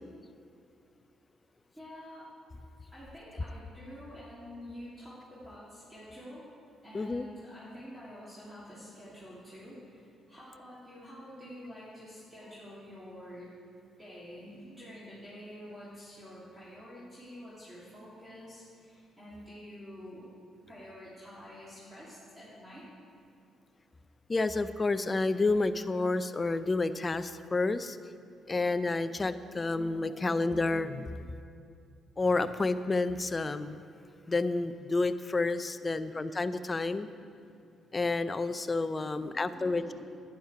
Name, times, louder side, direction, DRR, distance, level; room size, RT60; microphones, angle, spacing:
voice 1, 1.7-2.3 2.9-6.5 6.8-13.5 14.0-20.3 20.7-22.9 35.7-36.2 36.7-37.5 38.9-39.9, equal, 10° right, -10 dB, 2.9 m, -48 dB
voice 2, 6.9-7.3 24.3-28.0 28.5-31.3 32.2-33.8 34.3-37.1 37.9-39.8, left 3 dB, 25° left, 11 dB, 0.4 m, -30 dB
11.0 x 8.9 x 4.8 m, 2.6 s
cardioid pair, 90°, 0 cm